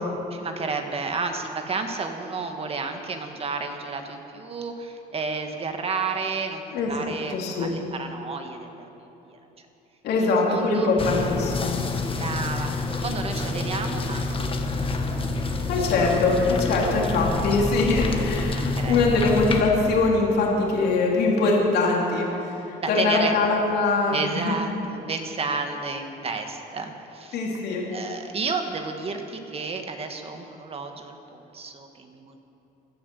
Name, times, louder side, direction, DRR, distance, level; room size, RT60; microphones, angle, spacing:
voice 1, 0.3-9.4 10.2-10.9 12.1-14.4 14.7-15.7 16.0-16.1 18.5-19.0 22.8-23.3 24.1-27.4 27.9-32.4, right 4 dB, 35° right, 5 dB, 1.5 m, -32 dB
voice 2, 6.7-7.7 10.0-11.8 15.7-24.6 27.3-27.8, left 3 dB, 75° left, -2 dB, 3.0 m, -23 dB
sound 1, 11.0-19.6, left 3 dB, 30° left, 1.5 m, -27 dB
16.5 x 11.5 x 6.9 m, 2.9 s
cardioid pair, 110°, 17 cm